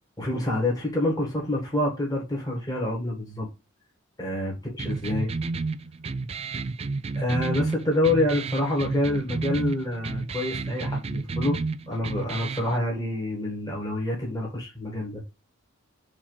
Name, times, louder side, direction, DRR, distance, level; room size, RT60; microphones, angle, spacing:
voice 1, 0.2-3.5 4.2-5.3 7.2-11.6 11.9-15.2, left 1 dB, 20° left, 2.0 m, -27 dB
sound 1, 4.8-12.8, right 3 dB, 30° right, 0.3 m, -31 dB
6.4 x 2.9 x 5.7 m
head